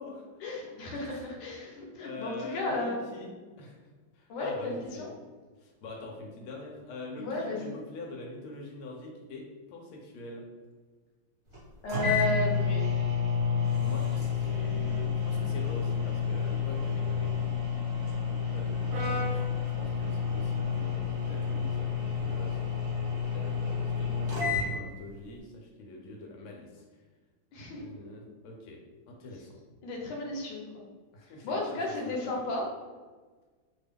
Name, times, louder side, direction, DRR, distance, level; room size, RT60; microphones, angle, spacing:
voice 1, 0.4-3.1 4.3-5.1 7.2-7.8 11.8-12.9 17.9-18.0 27.5-27.9 29.8-30.8 31.4-32.7, left 2 dB, 65° left, -2 dB, 1.3 m, -33 dB
voice 2, 2.0-3.3 3.6-3.8 4.1-5.1 5.6-10.4 13.8-17.4 18.2-22.6 23.3-26.8 27.8-28.8 29.1-29.6 31.1-32.5, left 2 dB, 85° left, 0 dB, 1.5 m, -44 dB
sound 1, 11.5-11.6 11.9-24.7, left 6 dB, 40° right, 1.3 m, -30 dB
Brass instrument, 18.9-23.1, right 1 dB, 75° right, 1.3 m, -42 dB
3.4 x 2.2 x 3.3 m, 1.4 s
omnidirectional pair, 2.3 m